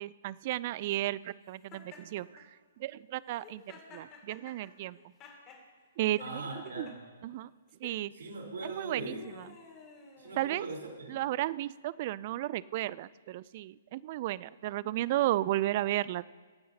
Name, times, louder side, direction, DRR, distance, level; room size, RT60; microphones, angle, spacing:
voice 1, 0.0-2.4 2.8-3.6 3.9-5.0 6.0-6.4 6.8-6.9 7.2-7.5 7.8-8.1 8.6-9.1 10.4-10.7 11.1-16.3, right 15 dB, 45° right, 20 dB, 0.3 m, -33 dB
Laughter, 1.7-2.4 3.3-5.6 6.2-6.9 7.7-8.0 8.7-10.9, left 5 dB, 25° left, 2.5 m, -53 dB
voice 2, 6.2-7.0 8.1-9.3 10.2-11.2, right 2 dB, 70° right, -1 dB, 3.8 m, -40 dB
23.5 x 9.4 x 2.8 m, 1.5 s
hypercardioid pair, 130°, 0 cm